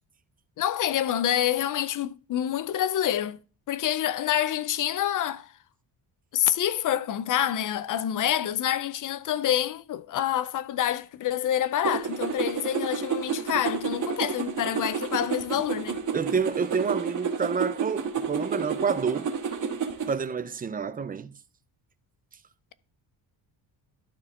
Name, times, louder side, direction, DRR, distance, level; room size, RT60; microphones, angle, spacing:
voice 1, 0.6-3.4 3.7-5.5 6.3-16.0, left 11 dB, 45° left, 0.4 m, -27 dB
sound 1, 11.8-20.1, right 6 dB, 40° right, 1.4 m, -30 dB
voice 2, 16.1-19.3 20.1-21.3, right 6 dB, 20° right, 0.3 m, -28 dB
12.5 x 4.3 x 3.6 m
cardioid pair, 140°, 45 cm